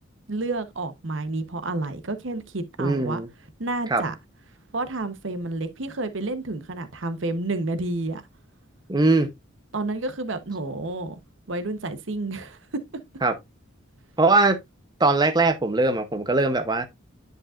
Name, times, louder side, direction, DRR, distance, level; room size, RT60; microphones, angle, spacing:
voice 1, 0.3-3.2 3.6-4.1 4.7-8.2 9.7-11.2 11.5-12.8, right 2 dB, 70° right, 1.0 m, -30 dB
voice 2, 2.8-3.3 3.9-4.0 8.9-9.3 13.2-13.3 14.2-14.6 15.0-16.9, right 3 dB, 20° right, 0.8 m, -20 dB
10.0 x 5.4 x 2.5 m
head